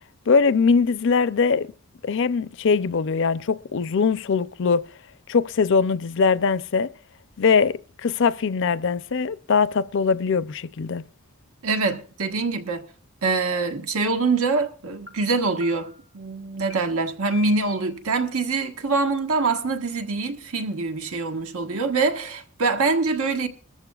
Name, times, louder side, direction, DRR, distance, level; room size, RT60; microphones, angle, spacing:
voice 1, 0.3-1.7 2.0-4.8 5.3-6.9 7.4-11.0, left 5 dB, 55° left, 0.5 m, -21 dB
voice 2, 11.6-12.8 13.2-23.5, right 3 dB, 85° right, 1.4 m, -24 dB
sound 1, 13.5-13.6 14.0-14.4 15.1-15.2 15.6-16.1 16.7-16.8 17.3-17.9, left 4 dB, 55° right, 3.0 m, -43 dB
20.5 x 13.5 x 2.3 m
head